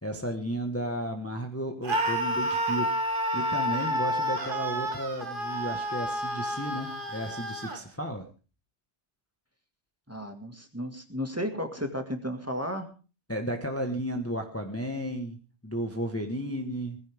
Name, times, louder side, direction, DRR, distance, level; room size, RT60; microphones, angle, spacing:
voice 1, 0.0-3.0 3.3-8.3 13.3-17.0, equal, 10° left, 4 dB, 1.5 m, -33 dB
Screaming, 1.8-7.8, equal, 50° right, 1.9 m, -30 dB
voice 2, 10.1-12.9, equal, 15° right, 5 dB, 2.0 m, -33 dB
20.0 x 15.0 x 3.6 m, 0.35 s
omnidirectional pair, 1.2 m